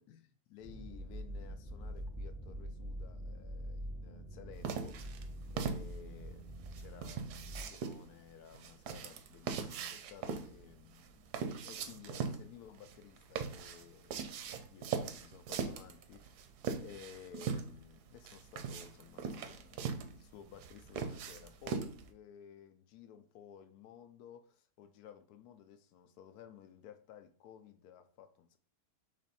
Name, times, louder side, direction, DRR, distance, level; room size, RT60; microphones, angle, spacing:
voice 1, 0.0-5.2 5.5-11.3 11.6-16.4 16.8-28.6, left 8 dB, 80° left, 1.1 m, -55 dB
sound 1, 0.6-7.6, equal, 5° left, 0.4 m, -45 dB
sound 2, 4.6-22.1, right 6 dB, 85° right, 1.1 m, -41 dB
4.0 x 3.3 x 4.1 m
omnidirectional pair, 1.7 m